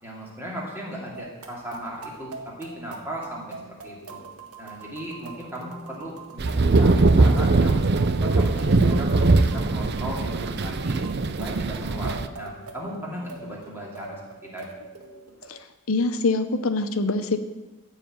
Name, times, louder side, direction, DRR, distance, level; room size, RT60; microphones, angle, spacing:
voice 1, 0.0-3.4 3.8-4.2 4.6-6.4 6.7-7.8 8.2-11.0 11.4-14.2 14.5-14.7, equal, 10° right, -4 dB, 2.7 m, -37 dB
sound 1, 1.1-15.5, right 3 dB, 90° right, 1.8 m, -43 dB
sound 2, 6.4-12.3, right 3 dB, 50° right, 0.5 m, -21 dB
voice 2, 15.9-17.4, left 3 dB, 70° left, 9 dB, 0.7 m, -24 dB
14.5 x 5.0 x 8.8 m, 1.1 s
head